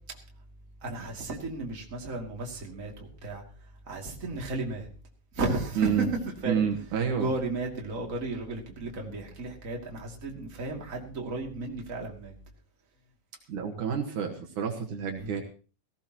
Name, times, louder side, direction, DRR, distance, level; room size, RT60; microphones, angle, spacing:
voice 1, 0.8-4.9 5.3-6.7 7.1-12.3 15.1-15.3, right 2 dB, 25° right, 0 dB, 2.8 m, -34 dB
voice 2, 5.8-6.1 6.5-7.3 13.5-15.4, right 7 dB, 70° right, 3 dB, 2.9 m, -29 dB
18.0 x 17.0 x 3.1 m, 0.38 s
omnidirectional pair, 3.8 m